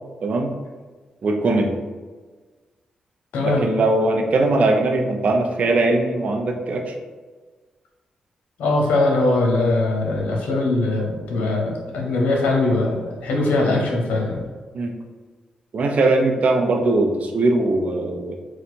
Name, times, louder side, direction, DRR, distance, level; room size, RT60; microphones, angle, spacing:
voice 1, 0.2-0.5 1.2-1.8 3.4-6.9 14.7-14.9 15.7-18.4, right 2 dB, 65° right, 2 dB, 0.7 m, -20 dB
voice 2, 3.3-3.6 8.6-14.4, left 2 dB, 90° left, -1 dB, 0.8 m, -21 dB
4.0 x 2.4 x 4.4 m, 1.4 s
cardioid pair, 60°, 3 cm